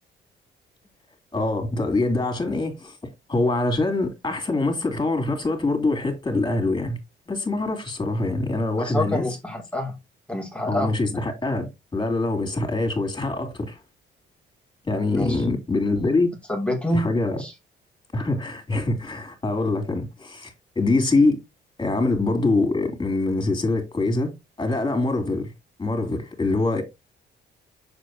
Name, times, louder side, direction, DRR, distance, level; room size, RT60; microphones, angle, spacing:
voice 1, 1.3-3.0 3.3-7.0 7.3-9.3 10.7-11.7 11.9-13.8 14.9-16.3 16.9-17.4 18.1-21.4 21.8-24.3 24.6-25.5 25.8-26.8, left 2 dB, 20° left, 3.6 m, -24 dB
voice 2, 8.8-10.0 10.3-10.9 15.2-15.4 16.5-17.1 17.4-17.5, left 1 dB, 5° left, 2.8 m, -27 dB
7.4 x 7.3 x 2.9 m
cardioid pair, 90°, 20 cm